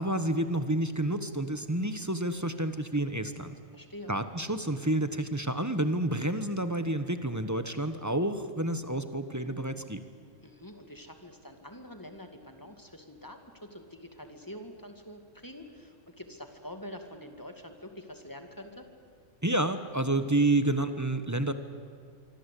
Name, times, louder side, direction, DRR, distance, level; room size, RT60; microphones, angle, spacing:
voice 1, 0.0-3.5 4.1-10.0 19.4-21.5, right 1 dB, 15° right, 10 dB, 1.1 m, -29 dB
voice 2, 3.7-4.1 10.4-18.9, left 1 dB, 15° left, 5 dB, 2.2 m, -46 dB
25.5 x 25.0 x 8.4 m, 2.1 s
omnidirectional pair, 1.3 m